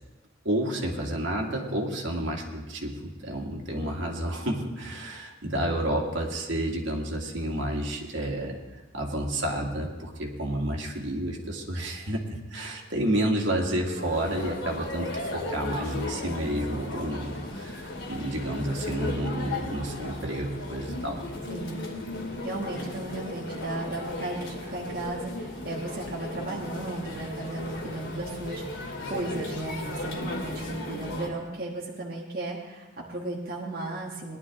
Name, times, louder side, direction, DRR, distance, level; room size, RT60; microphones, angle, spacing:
voice 1, 0.4-8.6 8.9-21.2, right 1 dB, 70° right, -1 dB, 2.1 m, -30 dB
sound 1, 13.9-31.3, left 2 dB, 80° left, 2.5 m, -36 dB
voice 2, 21.5-21.9 22.4-34.4, right 2 dB, 50° right, -3 dB, 1.4 m, -35 dB
19.0 x 11.5 x 3.6 m, 1.2 s
head